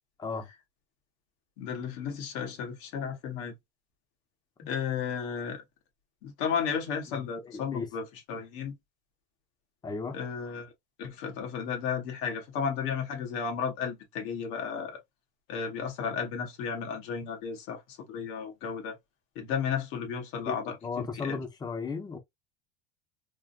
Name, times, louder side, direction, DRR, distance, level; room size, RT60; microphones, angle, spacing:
voice 1, 1.6-3.5 4.7-5.6 6.2-8.7 10.1-10.7 11.0-15.0 15.5-19.0 19.3-21.4, left 6 dB, 75° left, 1.4 m, -33 dB
voice 2, 7.5-7.9 9.8-10.2 20.5-22.2, left 4 dB, 20° left, 0.9 m, -35 dB
3.6 x 2.5 x 2.5 m
supercardioid pair, 120°, 20 cm